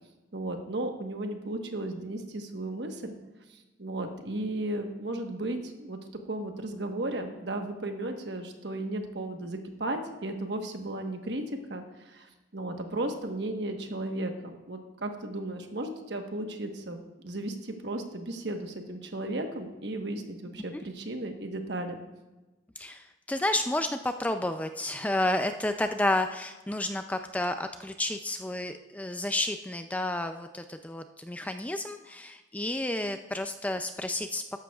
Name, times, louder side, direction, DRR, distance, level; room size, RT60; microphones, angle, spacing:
voice 1, 0.3-3.1 3.5-6.0 6.3-11.4 11.7-22.0, right 1 dB, 65° right, 5 dB, 1.2 m, -35 dB
voice 2, 22.8-34.4, left 1 dB, 10° left, 7 dB, 0.3 m, -31 dB
13.5 x 11.5 x 2.3 m, 1.1 s
head